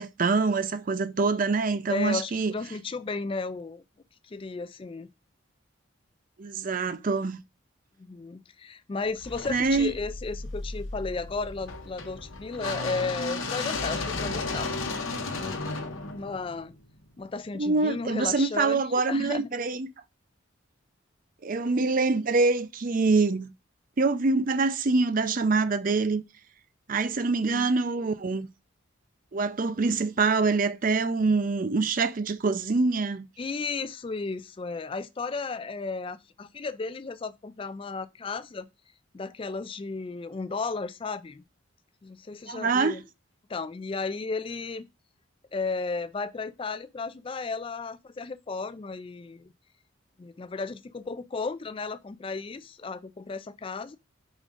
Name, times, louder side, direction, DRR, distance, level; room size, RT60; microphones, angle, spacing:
voice 1, 0.0-2.5 6.4-7.4 9.5-9.9 17.5-19.9 21.4-23.5 24.0-26.2 26.9-28.5 29.3-33.3 42.5-42.9, right 3 dB, 40° right, 0.5 m, -25 dB
voice 2, 1.9-3.8 4.2-5.1 8.0-14.7 15.3-15.6 16.1-16.7 17.2-18.8 19.1-19.5 27.5-27.7 33.4-38.7 39.1-41.4 42.0-43.0 43.5-44.9 45.5-49.5 50.2-54.0, left 4 dB, 25° left, 0.3 m, -34 dB
sound 1, 9.2-17.3, left 3 dB, 80° left, 0.9 m, -34 dB
5.0 x 3.6 x 5.2 m
head